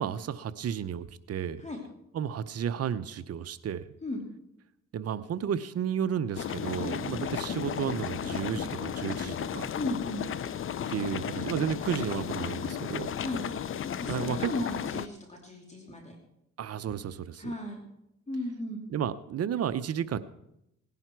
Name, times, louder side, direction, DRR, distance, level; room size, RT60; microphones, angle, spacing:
voice 1, 0.0-1.7 2.1-3.9 4.9-9.7 10.9-13.1 14.1-14.6 16.6-17.5 18.9-20.2, right 8 dB, 55° right, 14 dB, 0.8 m, -32 dB
sound 1, 6.3-15.1, left 8 dB, 45° left, 0.6 m, -34 dB
voice 2, 9.7-10.3 13.2-13.5 14.0-16.2 17.4-17.8 18.3-18.8, left 1 dB, 20° left, 1 dB, 2.8 m, -35 dB
18.5 x 11.0 x 4.6 m, 0.81 s
cardioid pair, 90°, 30 cm